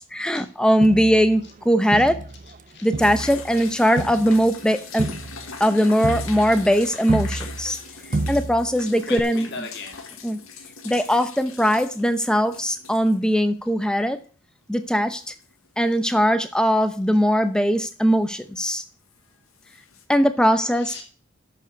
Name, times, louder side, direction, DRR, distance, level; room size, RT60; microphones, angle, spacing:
voice 1, 0.1-2.2 2.8-5.1 5.6-7.8 8.3-9.5 10.2-10.4 10.8-14.2 14.7-15.3 15.8-18.8 20.1-20.9, equal, 5° left, 10 dB, 0.8 m, -20 dB
Crowd, 0.8-2.6 2.9-7.8 8.1-8.8 9.2-9.3, right 2 dB, 40° right, 0.5 m, -30 dB
sound 1, 3.0-13.2 13.5-13.6 14.8-15.7 19.1-19.2 19.6-20.0, left 5 dB, 85° left, 1.7 m, -40 dB
voice 2, 3.7-4.0 5.4-5.5 6.2-6.3 6.7-6.8 7.6-7.8 9.1-10.0 20.7-21.0, left 4 dB, 55° left, 1 dB, 2.3 m, -39 dB
7.4 x 6.7 x 7.8 m, 0.41 s
head